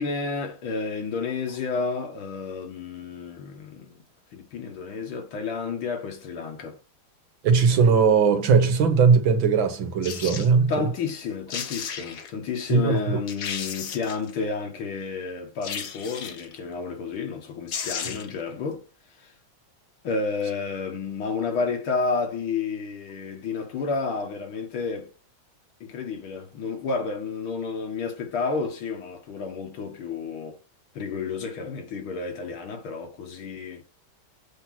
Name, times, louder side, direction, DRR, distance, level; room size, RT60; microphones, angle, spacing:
voice 1, 0.0-4.0 4.3-6.8 10.7-18.9 19.2-19.3 20.0-25.1 25.8-30.6 30.9-33.8, left 4 dB, 80° left, 2.2 m, -31 dB
voice 2, 7.4-10.9 12.7-13.0, right 5 dB, 70° right, 1.9 m, -19 dB
sound 1, 10.0-10.5 11.2-11.3 11.5-12.3 12.8-12.9 13.3-14.3 15.6-16.5 17.4-17.5 17.7-18.4 18.7-18.8, left 7 dB, 55° left, 1.1 m, -34 dB
7.8 x 3.0 x 5.8 m
omnidirectional pair, 2.3 m